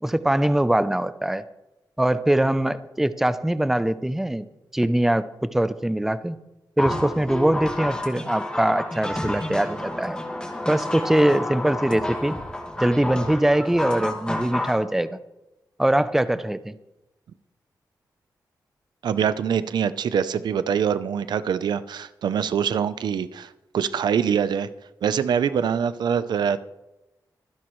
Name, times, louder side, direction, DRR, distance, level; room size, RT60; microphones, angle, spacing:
voice 1, 0.0-1.4 2.0-4.5 4.7-6.4 6.8-10.2 10.7-12.3 12.8-15.2 15.8-16.7, right 1 dB, 5° right, 13 dB, 0.5 m, -22 dB
sound 1, 6.8-14.8, left 1 dB, 10° left, 2.0 m, -30 dB
voice 2, 19.0-24.7 25.0-26.6, right 7 dB, 85° right, 14 dB, 0.6 m, -24 dB
24.5 x 10.5 x 3.2 m, 0.97 s
wide cardioid pair, 130°, 7 cm